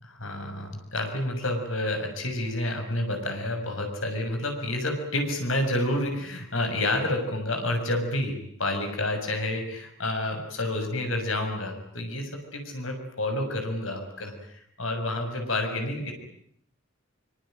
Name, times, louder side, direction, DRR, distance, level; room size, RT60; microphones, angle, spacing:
voice 1, 0.0-16.1, left 1 dB, 85° left, 5 dB, 6.7 m, -29 dB
24.5 x 24.0 x 9.1 m, 0.68 s
head